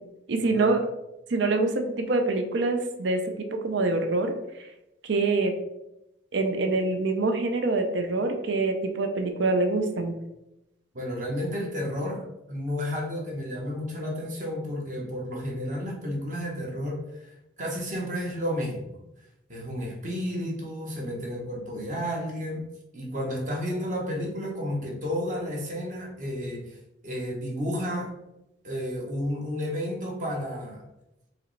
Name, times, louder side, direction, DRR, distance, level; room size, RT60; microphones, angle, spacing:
voice 1, 0.3-0.8 1.3-4.3 5.1-5.5 6.3-10.1, right 3 dB, 75° right, 5 dB, 0.5 m, -25 dB
voice 2, 10.9-19.0 19.5-26.8 27.0-28.1 28.6-30.8, equal, 40° right, -1 dB, 1.1 m, -32 dB
4.7 x 3.1 x 3.2 m, 0.90 s
head